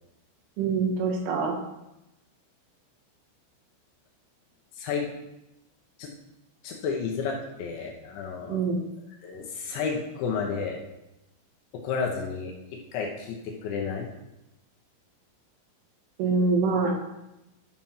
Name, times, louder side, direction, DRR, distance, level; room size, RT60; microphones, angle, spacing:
voice 1, 0.6-1.6 8.5-8.8 16.2-16.9, right 4 dB, 70° right, 0 dB, 4.1 m, -25 dB
voice 2, 4.8-5.1 6.0-6.1 6.6-8.6 9.2-10.8 11.7-14.1, left 5 dB, 70° left, 0 dB, 3.1 m, -31 dB
12.0 x 6.0 x 5.7 m, 0.92 s
omnidirectional pair, 6.0 m